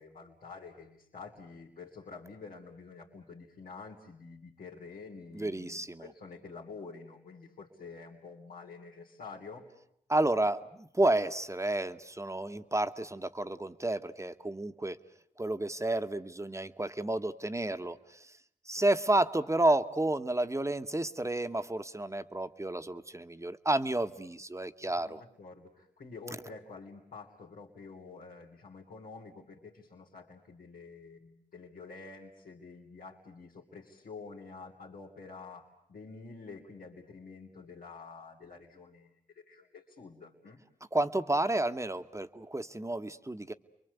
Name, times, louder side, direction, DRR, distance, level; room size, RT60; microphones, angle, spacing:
voice 1, 0.0-9.7 18.8-18.9 24.8-35.6 35.9-40.6, left 4 dB, 90° left, -4 dB, 2.8 m, -48 dB
voice 2, 5.3-6.1 10.1-15.0 15.4-18.3 18.7-25.2 40.9-43.5, right 2 dB, 20° right, 9 dB, 1.2 m, -31 dB
30.0 x 23.0 x 8.2 m, 0.69 s
cardioid pair, 50°, 14 cm